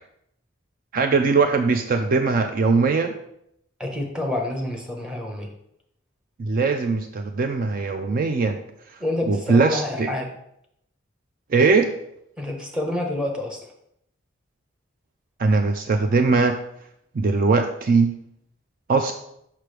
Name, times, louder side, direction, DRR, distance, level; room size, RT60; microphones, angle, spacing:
voice 1, 0.9-3.1 6.4-8.5 9.3-10.1 11.5-11.9 15.4-16.5 17.2-18.1 18.9-19.1, right 4 dB, 45° right, 6 dB, 0.4 m, -20 dB
voice 2, 3.8-5.5 9.0-10.3 12.4-13.6, left 1 dB, 5° right, 0 dB, 1.1 m, -28 dB
6.2 x 5.8 x 3.3 m, 0.75 s
head